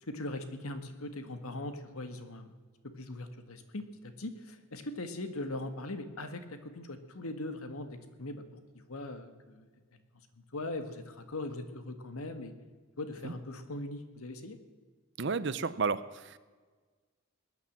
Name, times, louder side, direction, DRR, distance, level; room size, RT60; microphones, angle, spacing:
voice 1, 0.0-2.5 2.8-8.4 8.7-10.0 10.5-12.5 13.0-14.6, left 2 dB, 85° left, 9 dB, 1.6 m, -40 dB
voice 2, 15.2-16.4, right 5 dB, 55° right, 16 dB, 0.7 m, -32 dB
20.0 x 9.8 x 7.3 m, 1.4 s
head